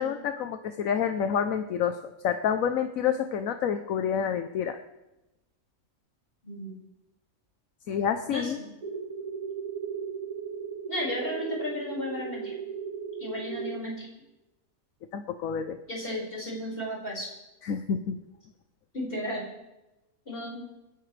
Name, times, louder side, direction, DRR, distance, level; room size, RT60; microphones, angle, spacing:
voice 1, 0.0-2.0 2.2-4.8 7.9-8.6 15.1-15.8 17.6-18.2, left 8 dB, 75° left, 8 dB, 1.2 m, -28 dB
voice 2, 6.4-6.8 8.3-8.7 10.9-12.5 13.2-14.1 15.9-17.3 18.9-19.5 20.3-20.6, left 1 dB, 40° left, -4 dB, 5.8 m, -34 dB
sound 1, 8.8-13.8, right 6 dB, 85° right, 2.3 m, -36 dB
28.5 x 10.5 x 3.4 m, 0.96 s
omnidirectional pair, 1.4 m